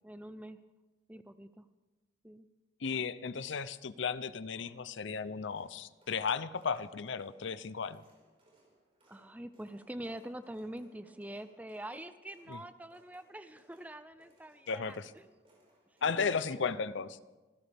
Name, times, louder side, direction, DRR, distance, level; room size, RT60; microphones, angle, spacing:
voice 1, 0.0-0.6 1.1-1.7 2.2-2.5 2.8-3.0 4.6-4.7 9.1-15.2 16.0-16.7, right 1 dB, 10° right, 12 dB, 0.5 m, -45 dB
voice 2, 2.8-8.0 12.5-12.6 14.7-15.1 16.0-17.2, left 5 dB, 70° left, 15 dB, 0.6 m, -35 dB
sound 1, 5.5-16.6, right 1 dB, 30° right, 5.2 m, -67 dB
26.0 x 15.5 x 3.5 m, 1.2 s
head